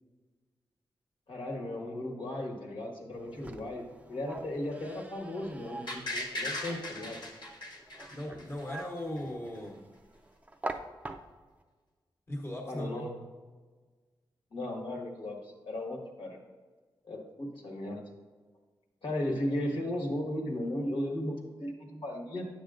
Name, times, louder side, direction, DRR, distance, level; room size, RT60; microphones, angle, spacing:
voice 1, 1.3-7.2 12.6-13.2 14.5-15.4 15.7-16.4 17.0-18.1 19.0-22.5, left 1 dB, 80° left, -1 dB, 1.4 m, -36 dB
sound 1, 3.1-11.6, right 2 dB, 15° right, 0.4 m, -45 dB
sound 2, 5.9-8.8 9.2-9.3, left 1 dB, 60° left, 1.2 m, -38 dB
voice 2, 8.1-9.8 12.3-12.9, left 1 dB, 30° left, 0 dB, 1.1 m, -38 dB
9.2 x 6.8 x 2.5 m, 1.4 s
wide cardioid pair, 120°, 9 cm